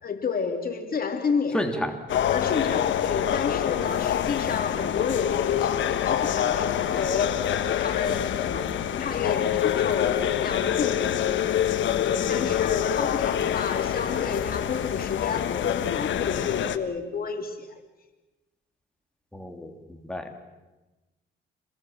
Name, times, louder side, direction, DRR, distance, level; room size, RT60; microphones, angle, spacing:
voice 1, 0.0-1.6 2.3-11.3 12.0-17.7, left 5 dB, 50° left, 5 dB, 3.0 m, -31 dB
voice 2, 1.5-2.0 2.5-2.6 12.2-12.7 19.3-20.4, equal, 5° left, 4 dB, 3.1 m, -32 dB
sound 1, 2.1-16.8, left 10 dB, 70° left, 1.4 m, -26 dB
28.0 x 21.5 x 7.4 m, 1.1 s
cardioid pair, 90°, 20 cm